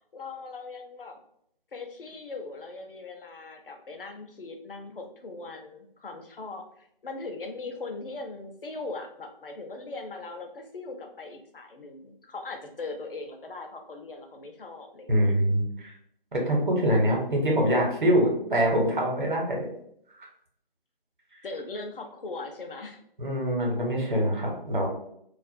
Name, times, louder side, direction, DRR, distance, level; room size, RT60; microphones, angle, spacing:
voice 1, 0.1-1.2 1.7-15.3 16.4-17.1 21.4-23.0, left 3 dB, 65° left, 4 dB, 0.6 m, -40 dB
voice 2, 15.1-15.9 16.3-19.7 20.2-20.3 23.2-24.9, equal, 55° right, -1 dB, 0.9 m, -24 dB
2.4 x 2.0 x 2.5 m, 0.68 s
figure-of-eight pair, 160°, 29 cm